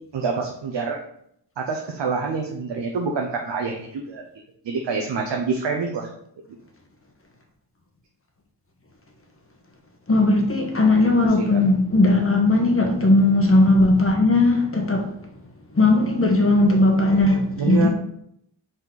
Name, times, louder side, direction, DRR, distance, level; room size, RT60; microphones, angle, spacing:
voice 1, 0.1-1.0 1.6-4.2 4.6-6.1 10.9-11.1 11.5-11.6 17.6-17.9, right 5 dB, 80° right, 0.9 m, -26 dB
voice 2, 10.1-15.1 15.7-17.9, left 2 dB, 30° left, 1.4 m, -18 dB
5.4 x 4.4 x 4.0 m
cardioid pair, 70°, 43 cm